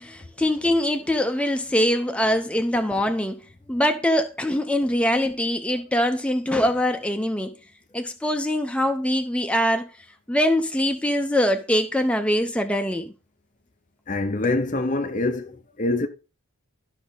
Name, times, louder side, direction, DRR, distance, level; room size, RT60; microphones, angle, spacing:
voice 1, 0.0-3.4 3.7-7.5 7.9-9.9 10.3-13.1, left 1 dB, 5° left, 0.8 m, -23 dB
voice 2, 14.1-16.1, left 2 dB, 35° left, 0.8 m, -25 dB
13.0 x 6.0 x 4.1 m
head